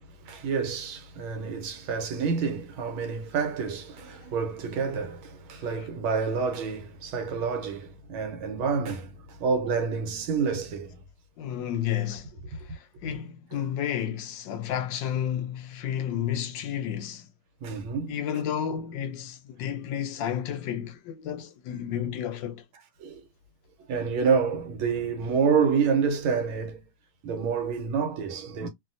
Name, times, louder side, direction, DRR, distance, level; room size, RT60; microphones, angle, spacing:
voice 1, 0.2-11.0 17.6-18.2 23.0-23.3 23.9-26.8 27.2-28.7, right 5 dB, 85° right, 1.6 m, -28 dB
voice 2, 11.4-17.3 18.1-22.6, left 9 dB, 75° left, 1.2 m, -32 dB
3.0 x 2.7 x 2.5 m
omnidirectional pair, 2.2 m